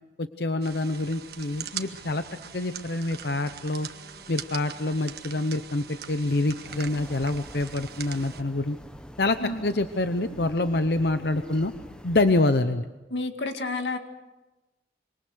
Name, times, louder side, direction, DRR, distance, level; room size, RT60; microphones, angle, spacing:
voice 1, 0.2-2.2 2.5-3.9 4.3-8.8 9.2-9.4 9.6-11.7 12.0-12.8, left 2 dB, 60° left, 9 dB, 0.9 m, -26 dB
sound 1, 0.6-8.4, right 9 dB, 60° right, 1.5 m, -41 dB
sound 2, 1.6-6.8, left 2 dB, 30° left, 7.1 m, -56 dB
sound 3, 6.6-12.4, equal, 5° left, 0.9 m, -44 dB
voice 2, 13.1-14.0, left 2 dB, 80° left, 6 dB, 2.1 m, -30 dB
26.0 x 24.0 x 6.4 m, 1.1 s
head